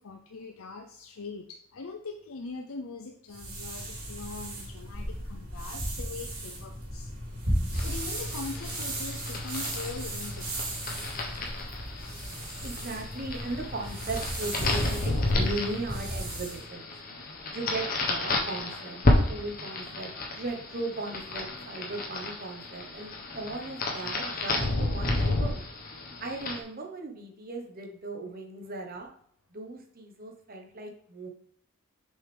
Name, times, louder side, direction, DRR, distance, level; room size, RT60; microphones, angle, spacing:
voice 1, 0.0-7.1 7.8-10.8, left 4 dB, 65° left, 4 dB, 0.6 m, -42 dB
sound 1, 3.3-16.6, right 1 dB, 80° right, 2.9 m, -35 dB
sound 2, 7.7-26.6, left 2 dB, 40° left, 1.1 m, -32 dB
voice 2, 12.6-16.9 17.5-19.0 19.3-25.6 26.2-29.1 29.5-31.3, right 2 dB, 40° right, 3 dB, 1.1 m, -37 dB
6.6 x 5.5 x 3.4 m, 0.67 s
head